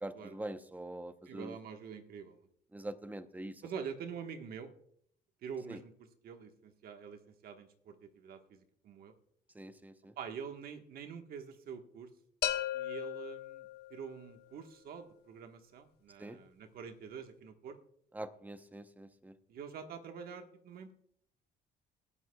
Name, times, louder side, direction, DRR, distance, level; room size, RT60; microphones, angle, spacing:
voice 1, 0.0-1.6 2.7-3.6 5.7-5.8 9.5-10.1 16.2-16.4 18.1-19.3, right 1 dB, 10° right, 10 dB, 0.8 m, -44 dB
voice 2, 1.3-2.5 3.6-4.7 5.4-5.9 6.2-9.1 10.2-12.1 12.7-17.8 19.5-20.9, right 6 dB, 60° right, 6 dB, 1.4 m, -46 dB
sound 1, 12.4-14.3, left 12 dB, 80° left, 1.1 m, -37 dB
20.0 x 13.0 x 2.3 m, 0.68 s
cardioid pair, 110°, 17 cm